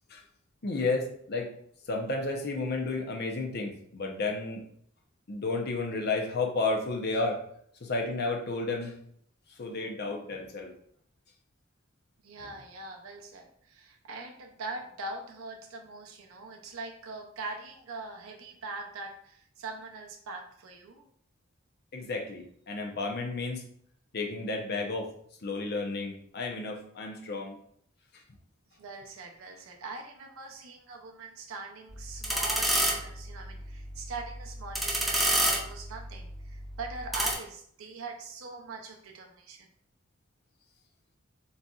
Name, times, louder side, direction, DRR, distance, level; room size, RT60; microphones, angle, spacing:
voice 1, 0.6-1.5 1.9-4.6 5.3-7.4 7.8-8.9 9.6-10.7 21.9-23.6 24.1-25.1 25.4-27.6, left 3 dB, 50° left, 2 dB, 0.7 m, -32 dB
voice 2, 12.2-21.1 28.8-39.7, right 3 dB, 85° right, 2 dB, 0.6 m, -42 dB
sound 1, 31.9-37.3, right 1 dB, ahead, 0.7 m, -30 dB
4.1 x 4.0 x 2.4 m, 0.64 s
head